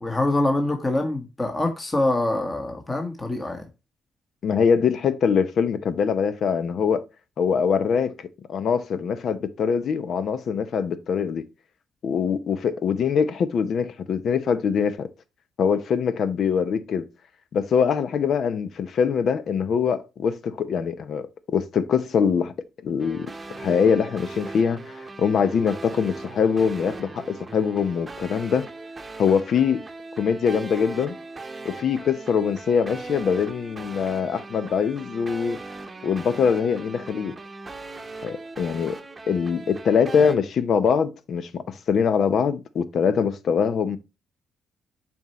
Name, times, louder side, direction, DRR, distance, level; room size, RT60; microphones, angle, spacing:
voice 1, 0.0-3.7, left 2 dB, 20° left, 1.4 m, -25 dB
voice 2, 4.4-7.0 7.4-8.1 8.5-11.4 12.0-15.1 15.6-17.0 17.5-22.5 22.8-23.3 23.6-28.7 29.2-29.8 30.2-31.1 31.6-35.6 36.0-37.4 38.2-39.0 39.3-44.0, left 6 dB, 60° left, 0.7 m, -23 dB
sound 1, 23.0-40.4, right 3 dB, 25° right, 0.9 m, -39 dB
7.2 x 4.4 x 3.0 m
cardioid pair, 90°, 0 cm